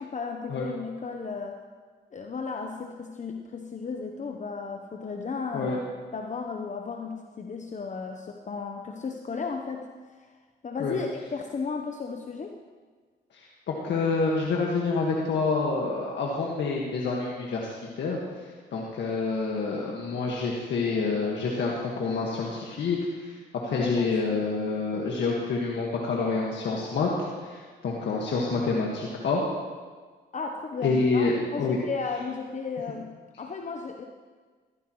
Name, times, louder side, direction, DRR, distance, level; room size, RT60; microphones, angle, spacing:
voice 1, 0.0-1.6 2.1-5.9 6.1-9.9 10.2-10.3 10.6-12.6 23.7-24.2 30.3-33.1 33.4-34.1, left 5 dB, 40° left, 3 dB, 1.0 m, -34 dB
voice 2, 13.7-17.7 18.0-18.2 18.7-23.3 23.6-27.1 27.5-29.4 30.8-31.3 31.6-31.8, left 4 dB, 75° left, -3 dB, 1.7 m, -27 dB
16.0 x 14.5 x 3.2 m, 1.5 s
cardioid pair, 70°, 19 cm